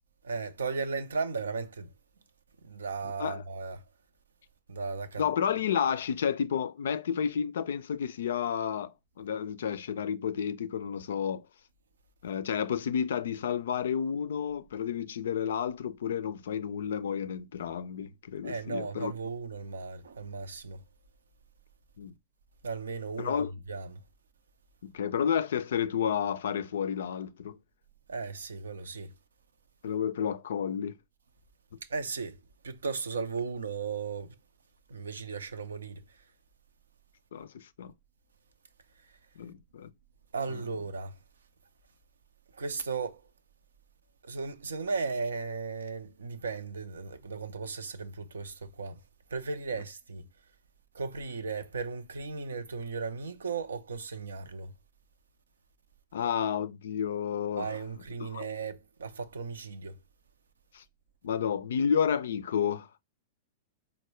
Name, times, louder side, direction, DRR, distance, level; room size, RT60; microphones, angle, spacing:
voice 1, 0.2-1.9 2.6-3.8 4.7-5.2 18.4-20.8 22.6-23.3 23.7-24.0 28.1-29.1 31.9-34.4 34.9-36.0 40.3-41.2 42.5-43.2 44.2-49.0 49.3-50.2 50.9-54.7 57.6-60.0, right 4 dB, 80° right, 0.5 m, -36 dB
voice 2, 5.2-11.4 12.2-19.1 22.0-22.1 23.2-23.5 24.8-27.6 29.8-31.0 37.3-37.9 39.4-39.9 40.5-40.6 56.1-57.7 58.2-58.5 60.7-60.8 61.2-63.0, left 8 dB, 70° left, 0.3 m, -31 dB
4.4 x 2.1 x 3.0 m
hypercardioid pair, 105°, 0 cm